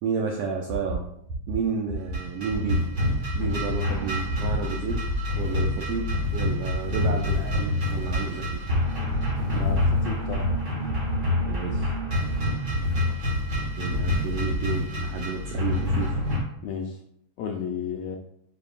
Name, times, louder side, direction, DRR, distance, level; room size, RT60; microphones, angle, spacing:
voice 1, 0.0-1.0 1.5-2.9 3.3-5.0 5.3-8.6 11.5-11.9 13.8-16.2, right 5 dB, 80° right, 1 dB, 1.4 m, -31 dB
sound 1, 0.7-1.0 1.3-1.6 1.9-2.2 2.5-2.8 3.1-3.4 3.7-3.9 4.3-4.6 4.9-5.1 5.5-5.8 6.1-6.4 6.7-7.0 7.3-7.6 7.9-8.2 8.5-8.8 9.1-9.4 9.7-10.0 10.3-10.6 10.9-11.1 11.5-11.8 12.1-12.4 12.7-13.0 13.3-13.6 13.9-14.2 14.5-14.6, right 1 dB, 60° right, 2.8 m, -33 dB
sound 2, 2.1-16.4, left 2 dB, 40° right, 1.0 m, -27 dB
voice 2, 9.5-10.5 16.6-17.0 17.4-18.2, left 6 dB, 75° left, 3 dB, 1.6 m, -32 dB
9.5 x 4.2 x 2.4 m, 0.73 s
omnidirectional pair, 3.4 m